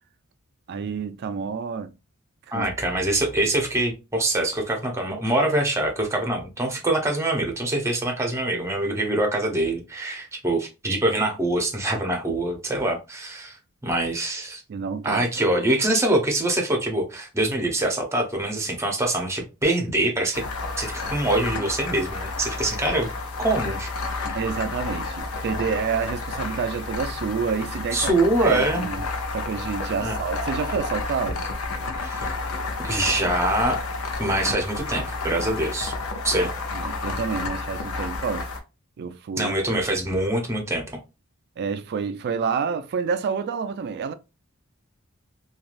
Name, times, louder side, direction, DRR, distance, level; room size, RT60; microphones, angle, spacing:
voice 1, 0.7-1.9 2.5-3.0 3.4-3.5 14.7-15.5 24.3-29.0 29.3-31.5 36.3-38.5 39.0-39.5 41.6-44.1, right 6 dB, 50° right, 0.3 m, -29 dB
voice 2, 2.5-13.6 13.8-14.6 15.0-20.4 20.8-23.1 23.4-23.9 24.2-24.4 27.9-28.9 30.0-30.2 32.0-32.3 32.8-33.8 34.2-35.9 36.2-36.5 39.4-40.8, right 1 dB, 15° right, 0.7 m, -24 dB
sound 1, 20.3-38.6, left 3 dB, 80° left, 0.6 m, -31 dB
3.1 x 2.3 x 2.4 m
head